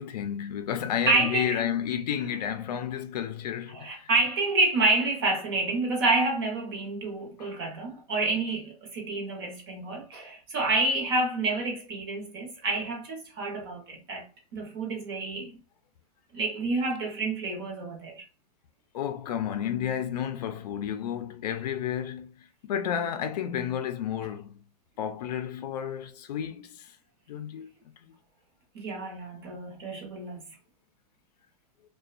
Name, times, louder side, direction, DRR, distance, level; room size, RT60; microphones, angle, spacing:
voice 1, 0.0-4.1 7.4-7.5 18.9-22.3 22.6-24.5 25.0-26.9 27.3-27.7, left 9 dB, 90° left, 0.4 m, -31 dB
voice 2, 1.1-1.6 3.7-14.3 14.5-15.5 16.3-18.2 28.7-30.4, right 3 dB, 40° right, 0.7 m, -28 dB
2.5 x 2.2 x 2.3 m
supercardioid pair, 175°, 20 cm